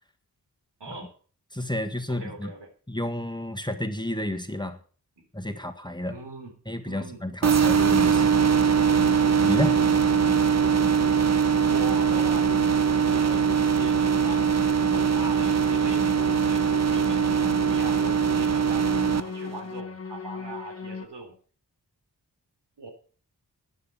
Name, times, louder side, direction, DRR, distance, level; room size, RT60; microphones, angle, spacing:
voice 1, 0.8-1.1 2.1-2.7 5.2-5.3 6.0-6.6 6.8-7.2 9.6-10.1 11.7-12.5 13.1-21.4 22.8-22.9, right 3 dB, 80° right, 4 dB, 3.7 m, -40 dB
voice 2, 1.5-2.5 2.9-4.8 5.3-6.2 6.7-8.3 9.4-9.8, left 1 dB, 10° left, 6 dB, 1.6 m, -30 dB
sound 1, 7.4-19.2, right 7 dB, 40° right, 0.7 m, -22 dB
sound 2, 7.9-21.1, left 5 dB, 35° left, 1.3 m, -38 dB
12.0 x 9.9 x 5.6 m, 0.41 s
cardioid pair, 50°, 40 cm